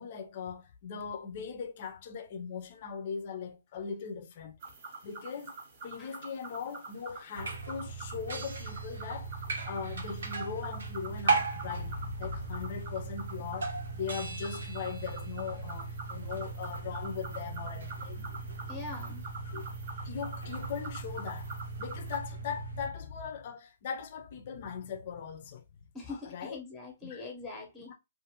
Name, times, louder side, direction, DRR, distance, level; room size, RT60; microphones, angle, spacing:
voice 1, 0.0-4.6 5.0-5.6 5.8-9.3 9.6-18.3 19.4-19.6 20.0-21.5 21.8-25.8 26.1-26.6 27.0-27.2 27.9-28.0, left 6 dB, 35° left, 0.5 m, -39 dB
sound 1, 4.6-22.2, right 3 dB, 35° right, 0.7 m, -46 dB
sound 2, 7.3-22.9, right 4 dB, 85° right, 1.0 m, -37 dB
voice 2, 18.3-19.2 25.9-27.9, left 3 dB, 5° left, 0.8 m, -43 dB
2.5 x 2.4 x 2.8 m
hypercardioid pair, 165°, 0 cm